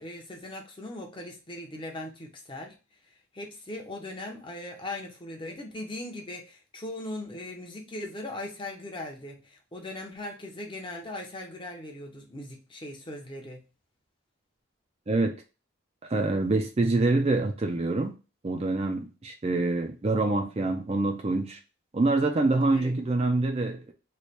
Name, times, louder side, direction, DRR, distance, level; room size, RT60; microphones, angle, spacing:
voice 1, 0.0-2.7 3.3-13.6 22.7-22.9, left 1 dB, 25° left, 0.7 m, -39 dB
voice 2, 16.1-18.1 18.4-21.6 21.9-23.9, right 2 dB, 30° right, 0.4 m, -26 dB
3.2 x 2.2 x 4.2 m
head